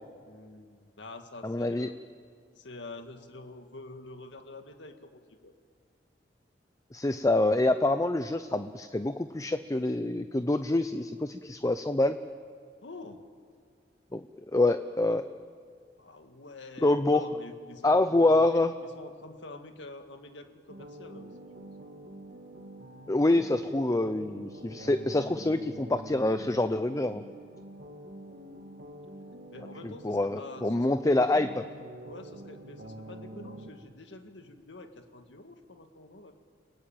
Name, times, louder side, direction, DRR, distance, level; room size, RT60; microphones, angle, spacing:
voice 1, 0.2-1.9 2.6-5.5 12.8-13.3 16.0-21.7 29.5-31.6 32.1-36.3, left 2 dB, 85° left, 6 dB, 1.9 m, -47 dB
voice 2, 1.4-1.9 6.9-12.2 14.1-14.2 14.5-15.3 16.8-17.3 17.8-18.7 23.1-27.2 29.8-31.6, left 2 dB, 20° left, 10 dB, 0.6 m, -26 dB
sound 1, 20.7-33.7, right 1 dB, 60° right, 2.0 m, -46 dB
29.5 x 18.5 x 8.9 m, 2.1 s
head